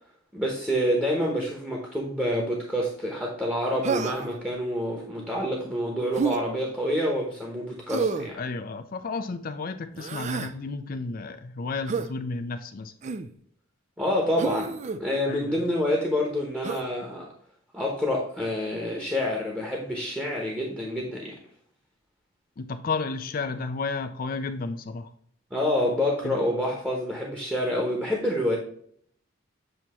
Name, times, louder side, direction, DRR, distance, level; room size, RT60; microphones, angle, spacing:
voice 1, 0.3-8.4 14.0-17.3 17.7-21.4 25.5-28.6, left 1 dB, 10° right, -2 dB, 1.0 m, -27 dB
Human voice, 3.8-4.4 6.1-6.4 7.9-8.3 9.9-10.5 11.9-12.1 13.0-13.3 14.4-15.0 16.6-16.9, right 5 dB, 35° right, 0.4 m, -29 dB
voice 2, 8.4-12.9 15.3-15.6 22.6-25.1 26.2-26.4, left 4 dB, 45° left, 8 dB, 0.4 m, -32 dB
7.8 x 2.9 x 4.2 m, 0.62 s
head